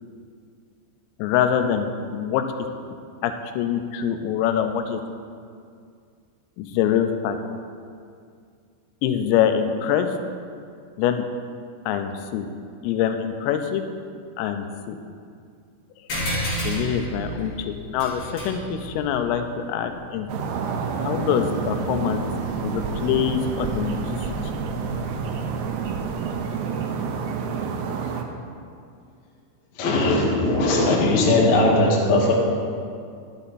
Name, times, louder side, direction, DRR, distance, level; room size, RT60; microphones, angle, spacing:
voice 1, 1.2-2.5 3.2-5.0 6.6-7.4 9.0-10.1 11.0-11.3 11.9-12.5 12.8-13.8 14.4-15.0 16.6-20.3 21.0-22.3 22.6-24.2, left 9 dB, 90° left, 7 dB, 3.4 m, -24 dB
sound 1, 16.1-21.0, equal, 45° left, 3.3 m, -32 dB
sound 2, 20.3-28.2, right 5 dB, 80° right, 2.8 m, -28 dB
voice 2, 29.8-32.3, left 2 dB, 60° left, -4 dB, 2.0 m, -19 dB
12.0 x 8.5 x 4.1 m, 2.3 s
omnidirectional pair, 5.8 m